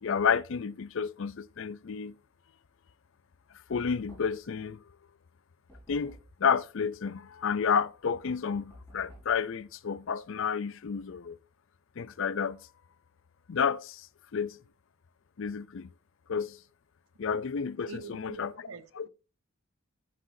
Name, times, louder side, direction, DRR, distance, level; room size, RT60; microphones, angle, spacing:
voice 1, 0.0-2.1 3.7-4.8 5.9-11.4 12.0-12.6 13.5-14.1 14.3-14.6 15.4-15.9 16.3-16.6 17.2-18.5 19.0-19.1, left 6 dB, 60° left, 0.5 m, -30 dB
Knock, 3.7-4.6 5.7-6.4 8.7-9.4, right 1 dB, 10° left, 5.9 m, -53 dB
voice 2, 17.9-19.1, right 5 dB, 75° right, 0.9 m, -45 dB
14.0 x 6.5 x 2.7 m
head